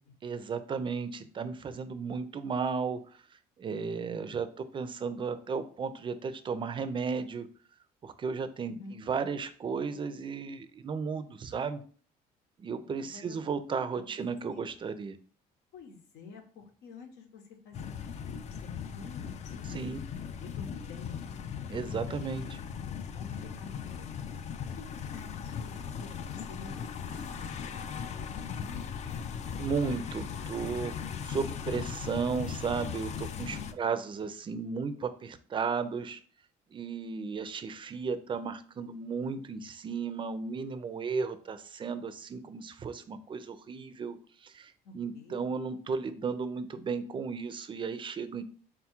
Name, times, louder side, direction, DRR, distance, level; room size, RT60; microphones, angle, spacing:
voice 1, 0.2-3.0 3.6-7.5 8.0-11.8 12.6-15.2 19.7-20.0 21.7-22.6 29.6-30.9 31.2-36.2 36.7-44.2 44.4-48.4, right 5 dB, 30° right, 11 dB, 0.4 m, -34 dB
voice 2, 8.7-9.0 13.0-13.4 13.7-14.1 14.4-14.7 15.7-18.0 18.2-19.6 20.3-21.4 23.1-24.1 24.8-24.9 25.1-27.6 27.9-29.2 33.3-33.7 44.8-45.5, left 4 dB, 85° left, 4 dB, 0.9 m, -49 dB
sound 1, 17.7-33.7, left 7 dB, 40° left, 0.4 m, -38 dB
3.6 x 2.3 x 4.4 m, 0.43 s
cardioid pair, 110°, 17 cm